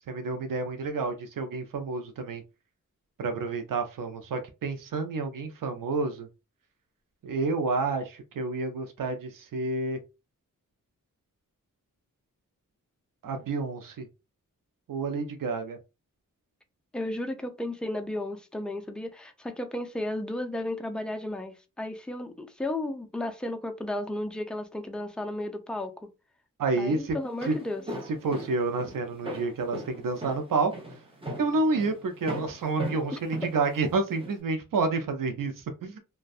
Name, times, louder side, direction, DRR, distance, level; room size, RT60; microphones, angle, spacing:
voice 1, 0.1-2.4 3.2-6.3 7.2-10.0 13.2-14.1 14.9-15.8 26.6-27.2 27.5-27.6 28.2-30.7 31.4-36.0, right 3 dB, 80° right, 0.5 m, -29 dB
voice 2, 16.9-26.1 26.8-27.9 33.1-33.2, left 1 dB, 5° left, 0.4 m, -34 dB
Walk footsteps, 27.2-34.4, right 1 dB, 15° right, 0.8 m, -38 dB
2.5 x 2.2 x 2.3 m
wide cardioid pair, 90°, 33 cm